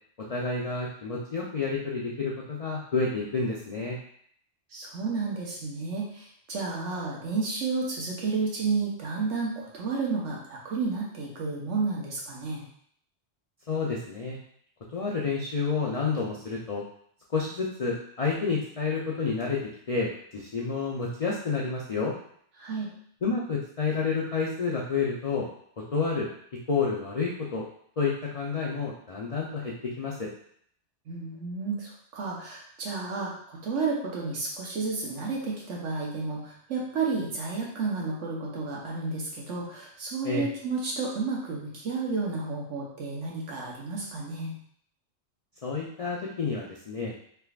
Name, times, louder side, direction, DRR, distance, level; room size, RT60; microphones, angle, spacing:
voice 1, 0.2-4.0 13.7-14.4 14.9-16.8 17.3-19.6 19.9-22.1 23.2-25.5 25.9-26.3 26.7-27.6 28.0-30.3 40.2-40.5 45.6-47.1, left 4 dB, 65° left, -3 dB, 0.3 m, -29 dB
voice 2, 4.7-12.6 22.6-22.9 31.1-44.6, right 4 dB, 75° right, -3 dB, 1.2 m, -31 dB
3.4 x 2.9 x 2.3 m, 0.64 s
omnidirectional pair, 1.2 m